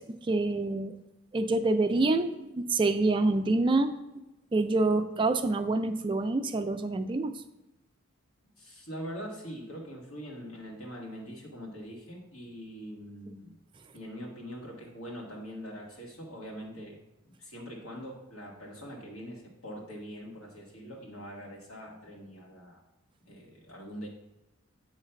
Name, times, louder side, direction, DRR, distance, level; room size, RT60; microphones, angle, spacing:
voice 1, 0.1-1.0 1.3-3.9 4.5-7.4 13.3-13.4, right 2 dB, 25° right, 7 dB, 0.3 m, -27 dB
voice 2, 8.6-13.5 13.9-17.0 17.3-22.8 23.3-24.1, equal, 80° left, -1 dB, 1.9 m, -43 dB
8.2 x 3.2 x 5.8 m, 0.95 s
head